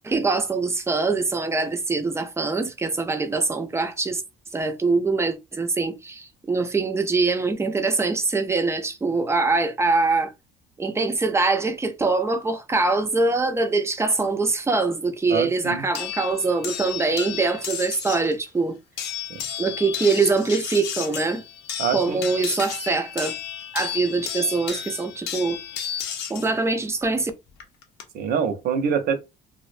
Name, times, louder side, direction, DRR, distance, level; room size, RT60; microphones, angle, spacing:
voice 1, 0.0-4.2 4.5-10.3 10.8-18.8 19.6-21.4 21.9-23.3 23.7-25.6 26.3-27.3, right 3 dB, 15° right, 0.4 m, -23 dB
voice 2, 15.3-15.8 19.3-19.4 21.8-22.3 28.1-29.2, right 7 dB, 65° right, 0.6 m, -25 dB
sound 1, 15.9-18.3 19.0-26.5 27.6-28.0, left 9 dB, 85° left, 0.6 m, -33 dB
2.4 x 2.1 x 2.5 m
cardioid pair, 110°, 17 cm